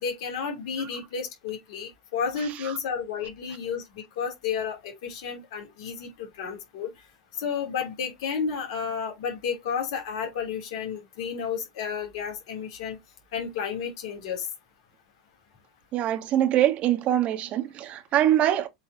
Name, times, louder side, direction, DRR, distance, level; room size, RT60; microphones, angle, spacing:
voice 1, 0.0-6.9 7.4-13.0 13.3-14.5, left 6 dB, 60° left, 3.1 m, -32 dB
voice 2, 15.9-18.7, right 12 dB, 40° right, 1.4 m, -23 dB
7.7 x 4.3 x 2.9 m
figure-of-eight pair, 85°, 3 cm